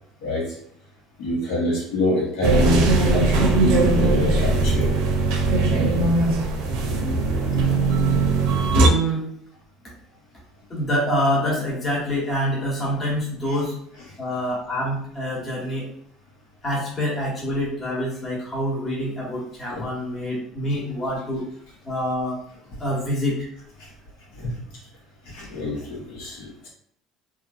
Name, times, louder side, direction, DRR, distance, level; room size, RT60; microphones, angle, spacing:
voice 1, 0.2-0.5 1.2-4.9 19.7-19.9 23.8-23.9 24.4-24.6 25.2-26.7, left 1 dB, 80° left, -4 dB, 1.2 m, -26 dB
sound 1, 2.4-8.9, right 2 dB, 80° right, 0.5 m, -19 dB
voice 2, 8.8-9.3 10.7-13.8 14.2-15.9 16.6-21.5 21.8-22.4 22.8-23.5, equal, 30° left, -5 dB, 1.2 m, -26 dB
2.7 x 2.6 x 2.4 m, 0.65 s
supercardioid pair, 110°, 0 cm